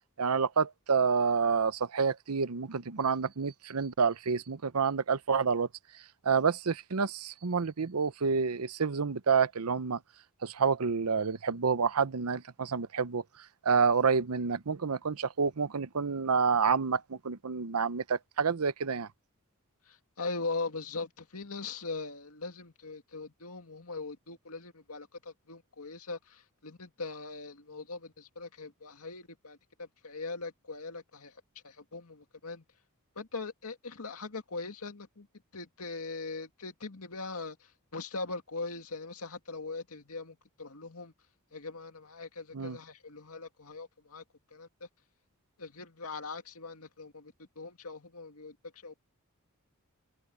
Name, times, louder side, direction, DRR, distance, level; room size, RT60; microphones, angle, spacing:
voice 1, 0.2-5.7 5.9-10.0 10.4-19.1 42.5-42.8, right 5 dB, 85° right, 0.8 m, -29 dB
voice 2, 19.9-31.4 31.6-32.6 33.2-35.3 35.5-37.6 37.9-41.1 41.5-44.2 44.5-44.7 45.6-48.6 48.8-49.0, left 3 dB, 80° left, 2.3 m, -41 dB
open air
head